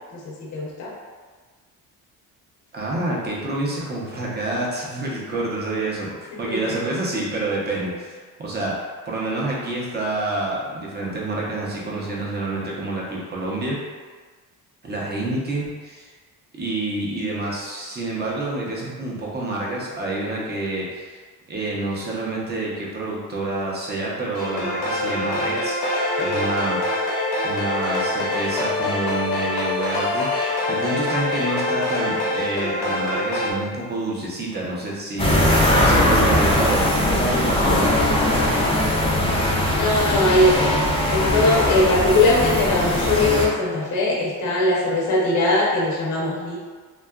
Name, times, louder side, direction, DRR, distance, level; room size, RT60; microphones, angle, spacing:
voice 1, 0.1-0.9 6.5-6.7 39.8-46.6, left 2 dB, 55° left, -5 dB, 0.7 m, -20 dB
voice 2, 2.7-13.8 14.8-16.1 16.6-21.2 21.5-25.8 26.2-27.1 27.4-38.2, right 2 dB, 25° right, -4 dB, 0.6 m, -28 dB
sound 1, 24.3-33.5, left 2 dB, 90° left, 0.9 m, -25 dB
sound 2, 35.2-43.5, left 1 dB, 15° left, 0.4 m, -20 dB
2.7 x 2.3 x 2.3 m, 1.5 s
cardioid pair, 110°, 37 cm